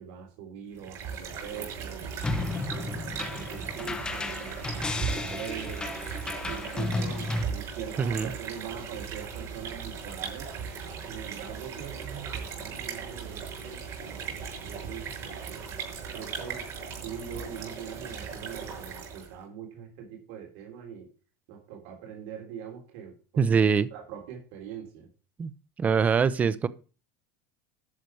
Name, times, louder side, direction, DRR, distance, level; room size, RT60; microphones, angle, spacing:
voice 1, 0.0-2.1 2.6-5.9 6.5-10.5 11.1-15.7 16.1-16.7 17.0-21.1 21.5-23.5 23.9-25.1, right 8 dB, 65° right, 3.4 m, -42 dB
sound 1, 0.7-19.4, right 6 dB, 35° right, 6.5 m, -38 dB
sound 2, 2.2-7.4, left 2 dB, 10° left, 1.0 m, -33 dB
voice 2, 8.0-8.3 23.4-23.9 25.4-25.5 25.8-26.7, right 6 dB, 15° right, 0.6 m, -23 dB
12.0 x 6.7 x 4.8 m
cardioid pair, 165°, 9 cm